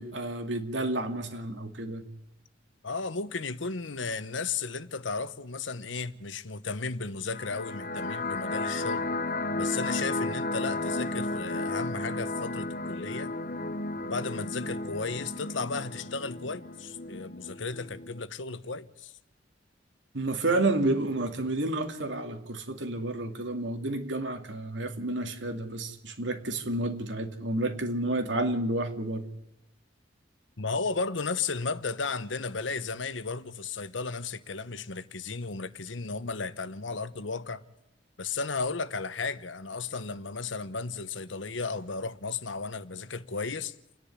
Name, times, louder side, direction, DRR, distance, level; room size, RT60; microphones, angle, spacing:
voice 1, 0.0-2.1 20.1-29.3, right 2 dB, 80° right, 2.4 m, -30 dB
voice 2, 2.8-9.0 9.6-13.3 14.0-19.1 30.6-37.6 38.2-43.7, left 4 dB, 85° left, 1.1 m, -34 dB
sound 1, 7.2-18.2, left 2 dB, 45° left, 1.0 m, -33 dB
29.5 x 10.5 x 9.8 m
head